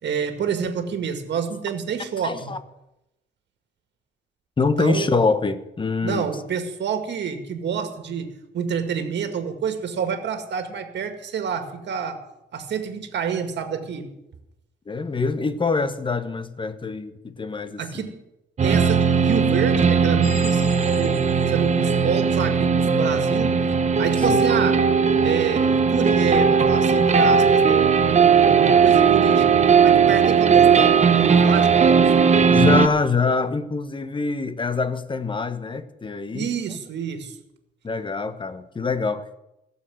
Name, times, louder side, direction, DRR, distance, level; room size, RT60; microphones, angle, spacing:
voice 1, 0.0-2.5 4.8-5.1 6.0-12.2 12.5-14.1 17.8-18.2 18.6-21.2 21.5-23.6 24.0-24.8 25.2-32.1 36.3-37.3, right 7 dB, 60° right, 2.0 m, -28 dB
voice 2, 2.2-2.6 4.6-6.3 14.9-18.1 24.3-24.4 32.5-36.5 37.8-39.4, left 4 dB, 25° left, 1.1 m, -24 dB
sound 1, 18.6-19.4 20.2-21.7, left 5 dB, 75° left, 3.6 m, -41 dB
sound 2, 18.6-32.9, right 6 dB, 35° right, 0.9 m, -18 dB
17.0 x 7.1 x 7.7 m
cardioid pair, 90°, 20 cm